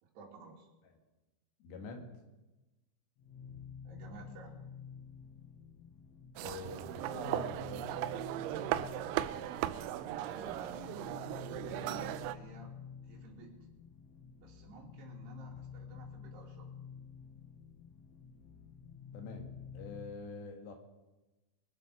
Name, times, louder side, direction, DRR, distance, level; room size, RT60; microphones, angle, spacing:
voice 1, 0.0-0.7 3.8-4.6 10.2-11.0 11.6-12.8 13.0-13.7 14.4-16.7, right 3 dB, 65° right, -2 dB, 4.5 m, -52 dB
voice 2, 1.6-2.1 6.4-7.9 19.1-20.7, left 4 dB, 70° left, 3 dB, 4.1 m, -46 dB
sound 1, 3.2-20.2, left 7 dB, 85° left, 3.6 m, -50 dB
sound 2, 6.4-12.4, right 13 dB, 85° right, 3.0 m, -37 dB
23.5 x 7.9 x 6.5 m, 1.1 s
omnidirectional pair, 5.3 m